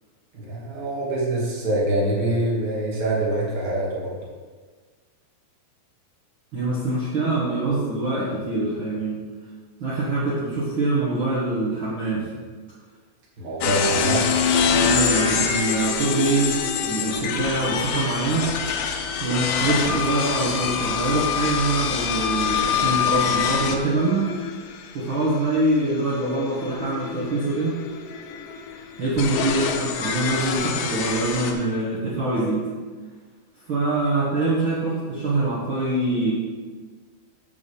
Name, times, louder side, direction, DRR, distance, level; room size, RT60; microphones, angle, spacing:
voice 1, 0.3-4.2 13.4-14.3, right 1 dB, 50° right, -6 dB, 0.5 m, -25 dB
voice 2, 6.5-9.2 9.8-12.4 14.7-18.5 19.2-24.3 24.9-27.8 29.0-32.7 33.6-36.3, right 2 dB, 70° right, -9 dB, 1.1 m, -24 dB
sound 1, 13.6-31.5, left 6 dB, 85° left, 1.9 m, -25 dB
6.0 x 5.7 x 6.9 m, 1.5 s
omnidirectional pair, 4.9 m